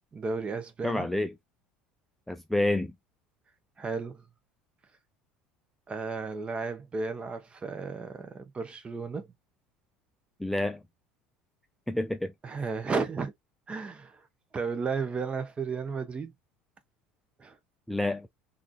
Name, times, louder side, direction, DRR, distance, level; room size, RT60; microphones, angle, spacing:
voice 1, 0.1-1.1 3.8-4.2 5.9-9.3 12.4-13.3 13.7-14.2 14.5-16.3 17.4-17.6, right 4 dB, 25° right, 0.9 m, -33 dB
voice 2, 0.8-1.3 2.3-2.9 10.4-10.8 11.9-12.3 17.9-18.3, left 1 dB, 5° left, 0.3 m, -28 dB
3.6 x 2.5 x 2.4 m
figure-of-eight pair, 65°, 4 cm